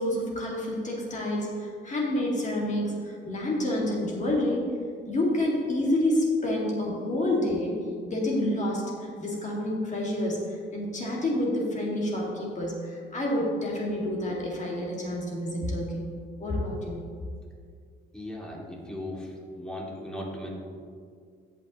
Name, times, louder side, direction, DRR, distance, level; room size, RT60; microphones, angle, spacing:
voice 1, 0.0-4.7 5.1-7.7 8.0-16.1 16.4-17.0, left 1 dB, 35° left, -3 dB, 2.0 m, -28 dB
voice 2, 18.1-20.5, left 1 dB, 5° left, -3 dB, 2.4 m, -37 dB
16.5 x 5.7 x 3.0 m, 2.1 s
cardioid pair, 90°, 20 cm